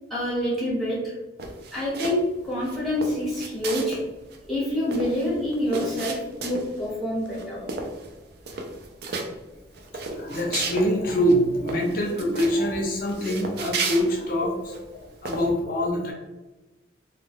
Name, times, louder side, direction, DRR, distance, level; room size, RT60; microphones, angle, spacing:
voice 1, 0.1-1.1 1.7-4.0 4.5-7.6, left 1 dB, ahead, -8 dB, 0.9 m, -27 dB
sound 1, 1.4-2.3 2.6-4.0 4.3-4.4 4.6-6.8 7.2-7.4 7.7-8.1 8.4-9.3 9.7-10.9 11.2-11.3 11.7-12.6 13.1-14.8 15.2-15.5, right 4 dB, 55° right, 0.4 m, -33 dB
voice 2, 10.2-16.1, equal, 50° left, 0 dB, 0.5 m, -25 dB
2.3 x 2.2 x 3.3 m, 1.1 s
head